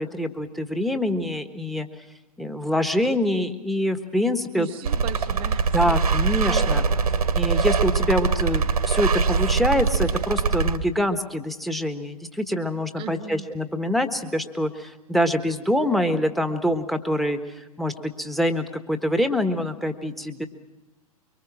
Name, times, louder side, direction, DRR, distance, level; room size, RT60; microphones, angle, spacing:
voice 1, 0.0-1.9 2.4-4.7 5.7-6.9 7.3-17.4 17.8-20.5, equal, ahead, 8 dB, 1.3 m, -25 dB
voice 2, 4.5-6.0 12.9-13.5, right 8 dB, 25° right, 10 dB, 1.1 m, -37 dB
sound 1, 4.8-10.8, right 5 dB, 75° right, 1.5 m, -22 dB
24.0 x 23.5 x 6.1 m, 1.0 s
figure-of-eight pair, 105°, 20 cm